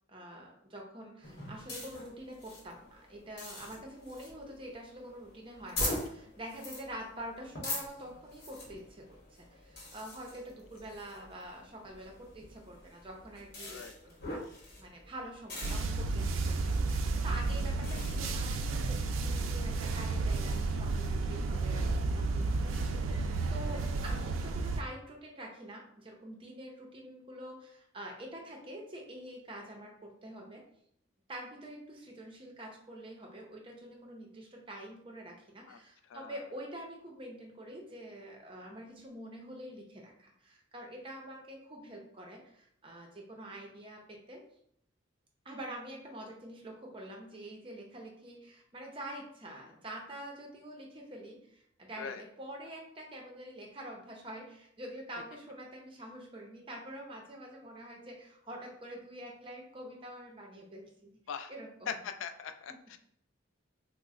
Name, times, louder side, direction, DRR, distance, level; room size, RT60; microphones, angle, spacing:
voice 1, 0.1-9.1 9.4-14.2 14.8-23.3 23.5-30.6 31.3-44.4 45.4-61.2 61.5-62.0 62.7-62.8, right 1 dB, 25° right, 0 dB, 0.6 m, -46 dB
sound 1, 1.2-18.2, left 1 dB, 50° left, 1.1 m, -43 dB
voice 2, 13.6-14.0 35.7-35.8 36.1-36.5 51.9-52.2 61.3-61.5 61.9-63.0, left 7 dB, 80° left, 8 dB, 0.3 m, -41 dB
sound 2, 15.6-24.8, right 3 dB, 85° right, 0.3 m, -32 dB
2.9 x 2.1 x 3.6 m, 0.69 s
head